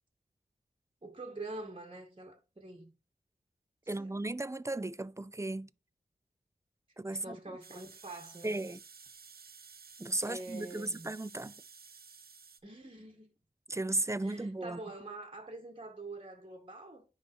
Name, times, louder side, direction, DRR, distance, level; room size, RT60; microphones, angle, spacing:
voice 1, 1.0-2.9 4.0-4.1 7.2-8.6 10.3-11.1 12.6-13.3 14.2-17.0, right 2 dB, 35° right, 1.9 m, -45 dB
voice 2, 3.9-5.7 7.0-7.4 8.4-8.8 10.0-11.5 13.7-14.8, right 2 dB, 20° right, 0.4 m, -35 dB
sound 1, 7.6-12.6, right 5 dB, 75° right, 0.8 m, -54 dB
9.9 x 4.0 x 4.6 m
wide cardioid pair, 60°, 16 cm